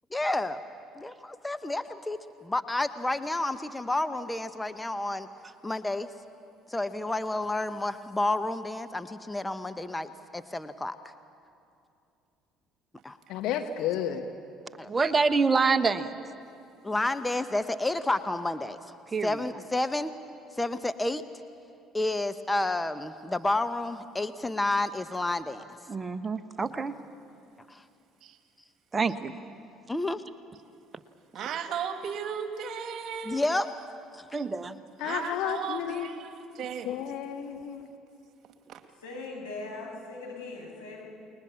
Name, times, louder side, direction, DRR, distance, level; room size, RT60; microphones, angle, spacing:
voice 1, 0.1-0.6 1.0-5.3 5.6-6.1 6.7-10.9 13.0-13.2 14.8-14.9 16.8-18.8 19.2-20.1 20.6-21.2 21.9-25.6 27.7-27.8 29.9-30.2 33.2-33.7 34.1-34.3, left 2 dB, 15° left, 10 dB, 1.0 m, -30 dB
voice 2, 13.3-14.3 35.0-36.1 36.3-36.5 36.8-37.9, left 10 dB, 65° left, 6 dB, 1.3 m, -32 dB
voice 3, 14.9-16.1 19.1-19.4 25.9-26.9 28.9-29.3 34.3-34.8, right 4 dB, 25° right, 9 dB, 1.2 m, -26 dB
voice 4, 31.3-33.6 34.4-34.5 35.0-37.0 38.7-38.8, right 7 dB, 55° right, 7 dB, 2.2 m, -36 dB
voice 5, 39.0-41.0, left 3 dB, 85° left, -4 dB, 6.4 m, -40 dB
29.5 x 21.0 x 7.1 m, 2.6 s
figure-of-eight pair, 55°, 0 cm